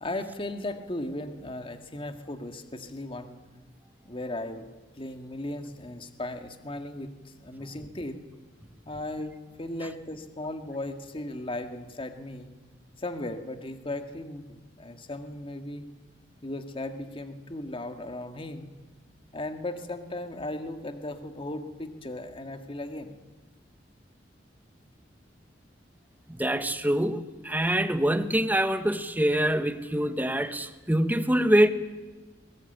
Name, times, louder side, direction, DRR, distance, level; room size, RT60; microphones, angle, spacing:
voice 1, 0.0-3.4 4.1-4.7 5.0-8.2 8.9-12.5 13.0-15.9 16.4-18.7 19.3-23.1, left 1 dB, 30° left, 1.9 m, -36 dB
voice 2, 26.3-31.7, right 1 dB, 10° right, 1.2 m, -25 dB
23.0 x 20.0 x 9.2 m
head